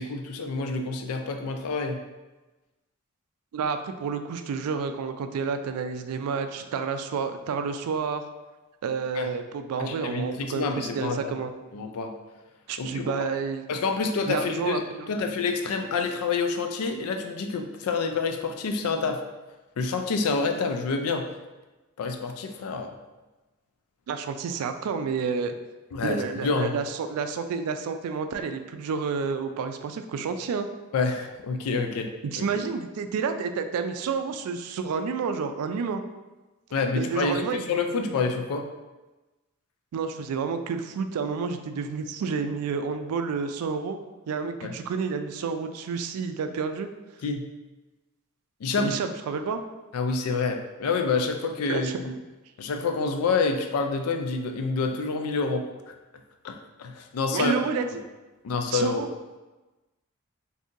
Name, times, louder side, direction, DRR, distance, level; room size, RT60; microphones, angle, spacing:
voice 1, 0.0-2.0 9.1-9.3 9.8-11.4 11.7-12.1 12.8-13.1 13.7-19.2 19.8-21.3 22.0-22.9 25.9-26.7 30.9-32.1 32.4-32.5 36.7-38.7 44.6-44.7 47.2-47.5 48.6-49.0 49.9-52.1 52.6-55.7 56.4-57.6 58.4-59.0, left 4 dB, 85° left, 5 dB, 0.4 m, -28 dB
voice 2, 3.5-8.2 8.8-11.5 12.7-13.6 14.3-15.1 24.1-25.5 26.0-30.7 32.2-36.0 37.0-38.1 39.9-44.0 44.3-46.9 48.8-49.6 51.7-52.0 57.3-58.0 58.7-59.1, right 5 dB, 90° right, 9 dB, 0.3 m, -30 dB
3.6 x 2.7 x 2.6 m, 1.1 s
head